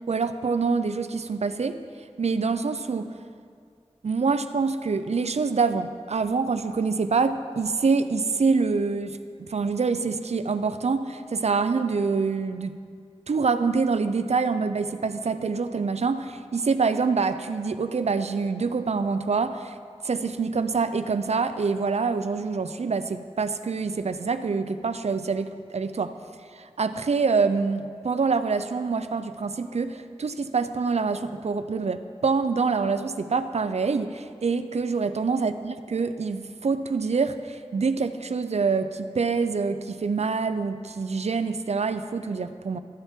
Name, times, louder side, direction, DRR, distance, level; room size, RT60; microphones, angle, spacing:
voice 1, 0.1-1.8 2.2-3.1 4.0-12.8 13.3-19.8 20.0-26.1 26.5-42.8, right 4 dB, 75° right, 11 dB, 0.4 m, -26 dB
13.5 x 7.2 x 3.6 m, 2.2 s
wide cardioid pair, 55°, 11 cm